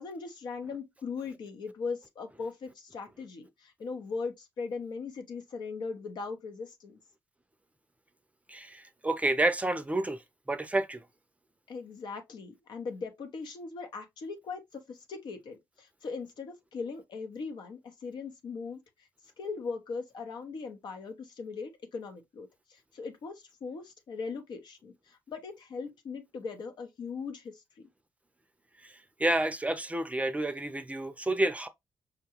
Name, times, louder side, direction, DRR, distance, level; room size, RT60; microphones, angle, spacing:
voice 1, 0.0-7.0 11.7-18.8 19.4-27.6, left 4 dB, 65° left, 0.9 m, -39 dB
voice 2, 8.5-10.2 10.5-11.0 28.8-28.9 29.2-31.7, right 2 dB, 15° right, 0.5 m, -29 dB
5.0 x 2.2 x 2.9 m
supercardioid pair, 50°, 8 cm